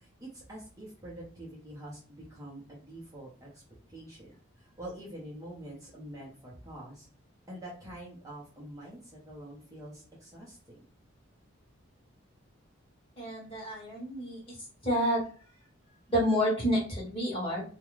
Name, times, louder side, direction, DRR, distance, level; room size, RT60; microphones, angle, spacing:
voice 1, 0.0-3.6 3.9-4.3 4.6-7.1 7.5-10.8, right 1 dB, 15° right, -6 dB, 0.6 m, -46 dB
voice 2, 13.2-14.5 14.8-15.2 16.1-17.6, equal, 25° left, -4 dB, 1.1 m, -29 dB
2.4 x 2.2 x 3.0 m, 0.40 s
head